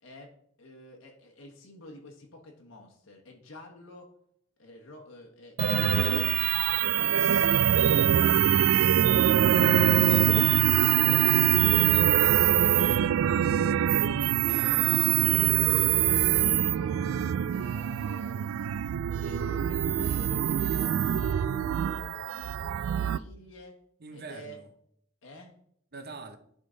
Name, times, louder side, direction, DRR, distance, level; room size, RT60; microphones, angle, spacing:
voice 1, 0.0-4.1 4.6-6.2 6.6-8.6 9.9-10.7 11.1-11.4 12.6-12.9 14.4-17.0 17.5-18.8 19.2-21.4 21.7-23.8 24.1-24.6 25.2-25.5, left 1 dB, 90° left, 1.3 m, -49 dB
sound 1, 5.6-23.2, right 11 dB, 85° right, 0.3 m, -24 dB
voice 2, 5.8-6.4 10.1-10.6 11.9-12.5 24.0-24.7 25.9-26.4, right 3 dB, 55° right, 0.8 m, -42 dB
10.5 x 3.8 x 3.9 m
head